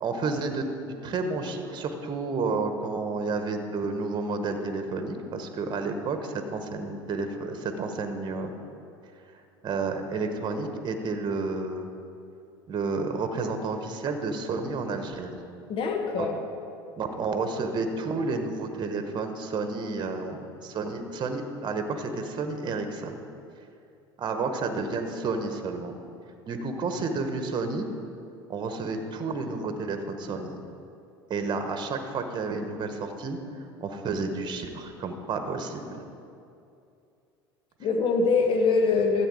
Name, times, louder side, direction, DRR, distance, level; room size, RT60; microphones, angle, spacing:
voice 1, 0.0-8.6 9.6-11.9 12.7-15.4 16.2-16.3 17.0-23.1 24.2-26.0 26.5-27.9 28.5-30.6 31.3-33.4 33.8-36.0, right 3 dB, 35° right, 6 dB, 1.2 m, -31 dB
voice 2, 15.7-16.4 37.8-39.3, left 4 dB, 45° left, 4 dB, 1.4 m, -23 dB
13.0 x 8.0 x 4.9 m, 2.6 s
hypercardioid pair, 75°, 13 cm